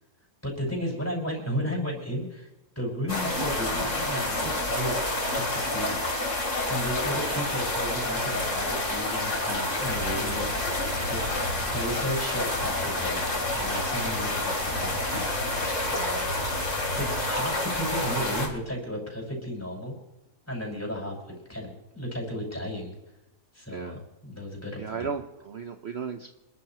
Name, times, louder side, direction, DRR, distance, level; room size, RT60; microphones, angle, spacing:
voice 1, 0.4-2.5 2.8-5.0 5.3-6.0 6.7-10.5 11.1-13.2 13.5-15.3 15.9-16.4 16.9-20.0 20.5-22.9 23.5-25.0, equal, 10° left, -3 dB, 5.9 m, -34 dB
sound 1, 3.1-18.5, left 2 dB, 60° left, 3.8 m, -28 dB
voice 2, 24.8-26.4, right 6 dB, 50° right, 6 dB, 1.1 m, -36 dB
27.5 x 13.0 x 3.0 m, 0.99 s
omnidirectional pair, 1.5 m